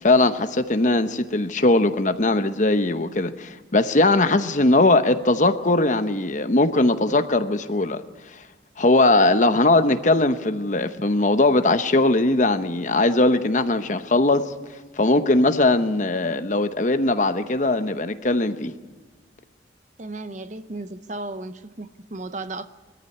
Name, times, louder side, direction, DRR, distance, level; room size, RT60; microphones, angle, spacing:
voice 1, 0.0-8.0 8.8-14.5 15.0-18.7, left 2 dB, 40° left, 0.9 m, -20 dB
voice 2, 20.0-22.7, right 2 dB, 40° right, 0.8 m, -34 dB
21.5 x 14.0 x 9.8 m
head